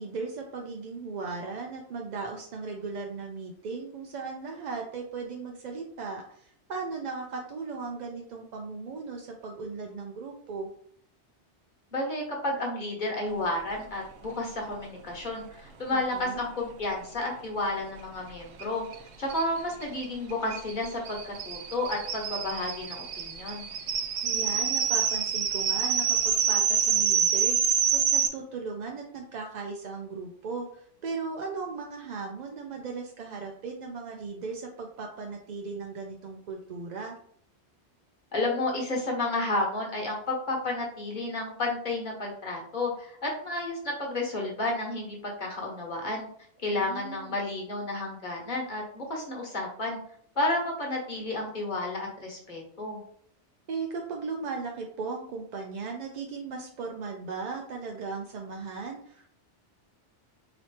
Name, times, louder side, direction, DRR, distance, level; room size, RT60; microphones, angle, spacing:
voice 1, 0.0-10.7 15.9-16.4 24.2-37.1 46.7-47.4 53.7-59.3, right 4 dB, 55° right, 1 dB, 0.5 m, -37 dB
voice 2, 11.9-18.8 19.2-23.7 38.3-46.3 46.6-50.0 50.3-53.0, left 2 dB, 45° left, -1 dB, 1.3 m, -31 dB
sound 1, 18.6-18.7 18.9-19.0 19.3-28.3, right 7 dB, 75° right, 0.9 m, -27 dB
4.2 x 3.0 x 3.2 m, 0.65 s
omnidirectional pair, 1.2 m